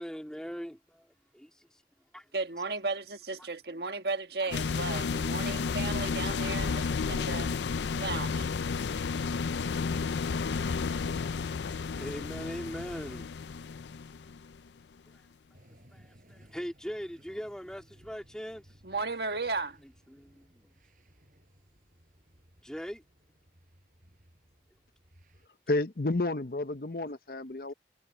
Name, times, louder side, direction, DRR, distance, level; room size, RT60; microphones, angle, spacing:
voice 1, 0.0-1.8 2.1-2.3 3.4-3.5 11.3-13.4 15.9-18.8 19.8-20.7 22.6-23.0, equal, 5° left, 2.5 m, -42 dB
voice 2, 2.3-7.5 7.9-8.5 18.8-19.8, right 3 dB, 65° right, 1.5 m, -35 dB
sound 1, 4.5-14.6, left 5 dB, 80° left, 0.5 m, -32 dB
sound 2, 15.5-25.5, equal, 50° right, 5.2 m, -60 dB
voice 3, 25.7-27.7, left 2 dB, 55° left, 0.9 m, -31 dB
head